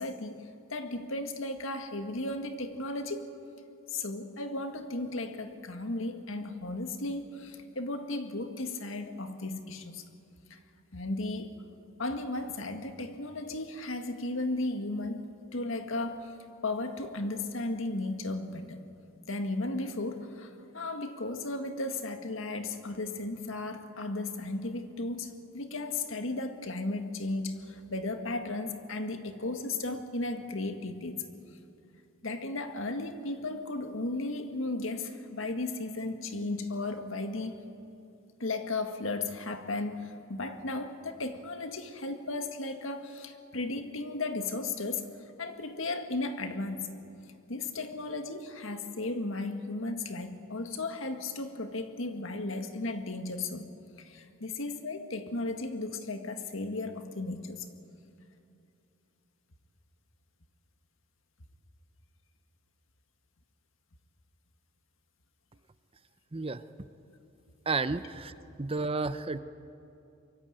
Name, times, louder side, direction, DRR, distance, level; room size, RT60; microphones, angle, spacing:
voice 1, 0.0-3.3 3.9-10.0 10.5-10.6 10.9-11.6 12.0-15.3 15.5-16.4 16.6-18.8 19.3-31.2 32.2-37.6 38.4-45.1 45.4-46.9 47.5-53.7 54.0-57.7, left 2 dB, 65° left, 7 dB, 1.9 m, -35 dB
voice 2, 66.3-66.6 67.7-68.3 68.6-69.4, right 3 dB, 25° right, 13 dB, 0.6 m, -31 dB
24.5 x 23.0 x 8.8 m, 2.6 s
head